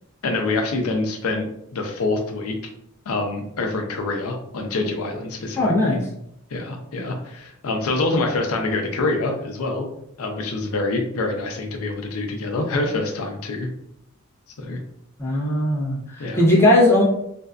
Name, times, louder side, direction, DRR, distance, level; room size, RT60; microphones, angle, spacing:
voice 1, 0.2-2.6 3.1-6.0 6.5-9.9 10.2-13.7 14.6-14.8 16.2-16.4, left 2 dB, 80° left, 3 dB, 0.5 m, -26 dB
voice 2, 5.6-6.0 15.2-17.1, left 1 dB, 10° left, -5 dB, 0.6 m, -18 dB
2.5 x 2.2 x 2.2 m, 0.76 s
head